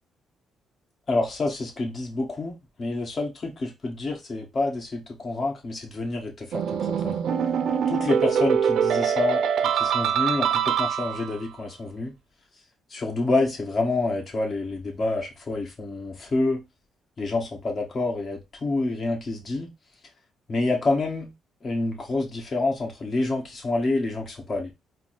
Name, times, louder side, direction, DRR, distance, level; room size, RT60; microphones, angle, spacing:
voice 1, 1.1-7.2 7.9-9.4 9.7-12.1 12.9-16.6 17.2-19.7 20.5-21.3 21.6-24.7, left 2 dB, 40° left, 1.7 m, -28 dB
sound 1, 6.5-11.4, right 8 dB, 70° right, 0.5 m, -24 dB
4.4 x 2.2 x 4.3 m
cardioid pair, 90°, 0 cm